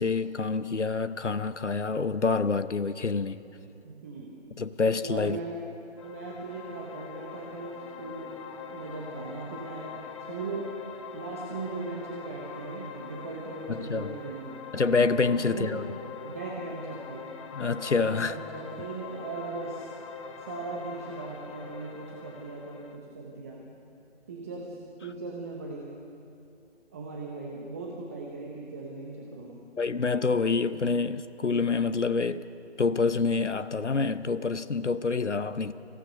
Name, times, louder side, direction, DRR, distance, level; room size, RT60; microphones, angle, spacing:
voice 1, 0.0-3.4 4.6-5.4 13.7-14.1 14.7-15.8 17.5-18.4 29.8-32.4 32.8-35.7, left 4 dB, 90° left, 0.8 m, -27 dB
voice 2, 3.8-4.4 4.9-5.6 6.0-8.3 8.7-10.7 11.1-14.6 15.3-15.9 16.2-17.3 17.9-19.9 20.4-23.7 24.3-25.9 26.9-29.6, right 3 dB, 15° right, 0.8 m, -38 dB
sound 1, 6.0-23.0, left 5 dB, 25° left, 1.1 m, -43 dB
24.5 x 16.5 x 6.8 m
figure-of-eight pair, 150°, 34 cm